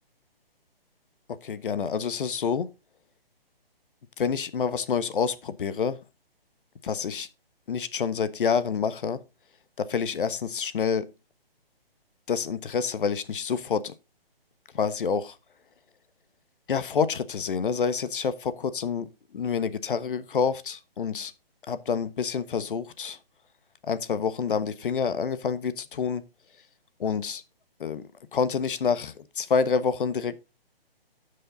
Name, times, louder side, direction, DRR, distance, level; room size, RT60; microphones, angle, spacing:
voice 1, 1.3-2.7 4.2-6.0 6.8-7.3 7.7-9.2 9.8-11.1 12.3-13.9 14.7-15.4 16.7-19.1 19.3-21.3 21.7-23.2 23.9-26.2 27.0-27.4 27.8-28.0 28.3-30.4, left 6 dB, 60° left, 1.2 m, -27 dB
12.5 x 5.5 x 3.8 m
hypercardioid pair, 150°, 30 cm